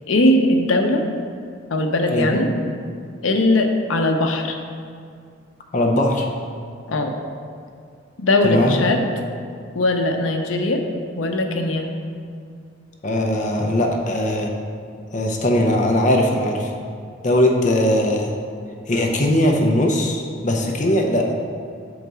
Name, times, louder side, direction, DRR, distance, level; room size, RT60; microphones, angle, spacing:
voice 1, 0.1-1.0 1.7-2.5 3.2-4.6 6.9-7.1 8.2-9.0 9.7-10.8 11.2-11.9, left 1 dB, 90° left, 4 dB, 0.6 m, -19 dB
voice 2, 2.1-2.4 5.7-6.3 8.4-8.8 13.0-14.5 15.1-16.7 17.2-18.4 18.9-21.3, left 1 dB, 40° left, 1 dB, 0.6 m, -19 dB
6.5 x 4.0 x 4.7 m, 2.3 s
head